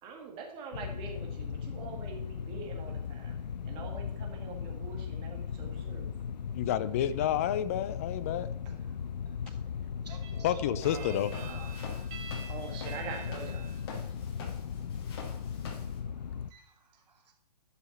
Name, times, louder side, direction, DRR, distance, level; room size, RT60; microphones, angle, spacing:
voice 1, 0.0-3.3 3.6-6.1 8.7-8.8 10.2-14.1 16.5-16.7, right 5 dB, 25° right, 1 dB, 2.0 m, -44 dB
sound 1, 0.7-16.5, left 7 dB, 80° left, 0.6 m, -38 dB
voice 2, 6.5-8.5 10.4-11.3, left 11 dB, 20° left, 14 dB, 0.3 m, -30 dB
voice 3, 10.0-10.9 14.1-14.2 15.3-17.3, right 5 dB, 75° right, 1 dB, 2.8 m, -57 dB
Walk footsteps, 10.8-16.0, left 4 dB, 35° left, 1.7 m, -47 dB
11.5 x 5.7 x 4.2 m, 0.73 s
hypercardioid pair, 145°, 21 cm